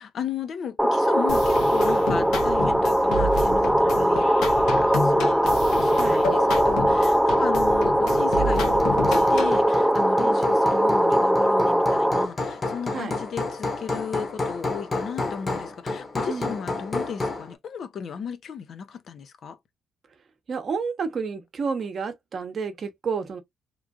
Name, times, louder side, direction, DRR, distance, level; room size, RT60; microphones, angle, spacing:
voice 1, 0.0-19.6, left 7 dB, 60° left, 0.6 m, -35 dB
sound 1, 0.8-12.3, equal, 5° right, 0.3 m, -21 dB
sound 2, 1.3-9.6, left 2 dB, 90° left, 0.9 m, -30 dB
voice 2, 5.9-6.3 10.2-10.5 12.9-13.2 16.3-16.6 20.5-23.4, right 5 dB, 50° right, 0.8 m, -30 dB
Hammer, 7.9-17.5, left 2 dB, 30° left, 1.0 m, -31 dB
3.0 x 2.5 x 2.3 m
cardioid pair, 90°, 0 cm